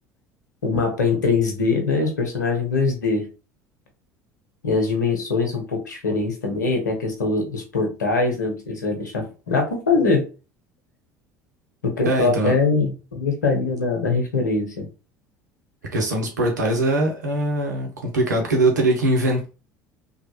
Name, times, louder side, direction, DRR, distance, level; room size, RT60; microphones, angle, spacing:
voice 1, 0.6-3.2 4.6-10.2 11.8-14.9, left 4 dB, 85° left, 0.9 m, -22 dB
voice 2, 12.0-12.5 15.9-19.5, right 1 dB, 85° right, 0.9 m, -21 dB
3.1 x 2.4 x 2.9 m
figure-of-eight pair, 65°, 9 cm